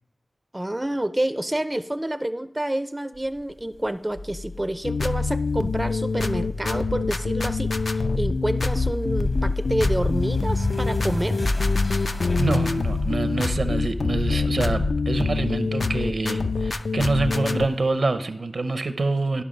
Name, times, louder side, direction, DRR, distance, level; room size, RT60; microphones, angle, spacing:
voice 1, 0.5-11.4, right 1 dB, 20° right, 13 dB, 0.4 m, -28 dB
sound 1, 4.2-17.3, left 2 dB, 45° left, 0.9 m, -31 dB
sound 2, 4.8-17.7, left 4 dB, 80° left, 0.4 m, -25 dB
voice 2, 12.4-19.4, right 3 dB, 75° right, 10 dB, 0.6 m, -26 dB
12.5 x 5.6 x 5.1 m, 0.82 s
wide cardioid pair, 70°, 0 cm